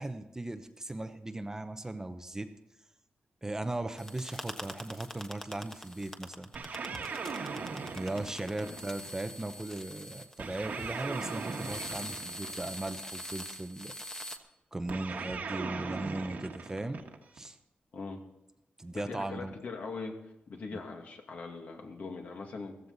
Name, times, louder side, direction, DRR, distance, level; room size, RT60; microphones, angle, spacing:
voice 1, 0.0-2.5 3.4-6.5 8.0-14.4 14.7-17.0 17.3-17.6 18.8-19.5 20.7-20.8, right 2 dB, 15° right, 8 dB, 0.8 m, -38 dB
sound 1, 4.0-14.4, left 1 dB, 15° left, 1.2 m, -44 dB
sound 2, 6.5-9.1 10.4-13.0 14.9-17.5, right 4 dB, 60° right, 1.6 m, -39 dB
voice 2, 18.9-20.2 20.5-22.9, left 4 dB, 60° left, 2 dB, 2.4 m, -41 dB
15.5 x 15.0 x 4.1 m, 0.90 s
wide cardioid pair, 120°, 3 cm